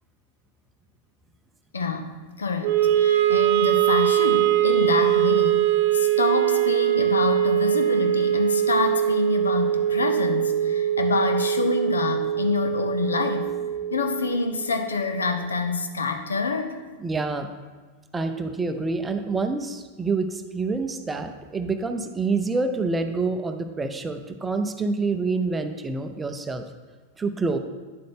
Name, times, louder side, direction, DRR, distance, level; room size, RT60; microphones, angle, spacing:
voice 1, 1.7-13.5 13.9-16.8, left 4 dB, 70° left, 6 dB, 0.8 m, -27 dB
Wind instrument woodwind instrument, 2.6-14.9, right 11 dB, 50° right, 1.0 m, -22 dB
voice 2, 17.0-17.5 18.1-26.7 27.2-27.6, right 3 dB, 15° right, 7 dB, 0.6 m, -27 dB
9.6 x 7.6 x 3.6 m, 1.4 s
figure-of-eight pair, 90°, 0 cm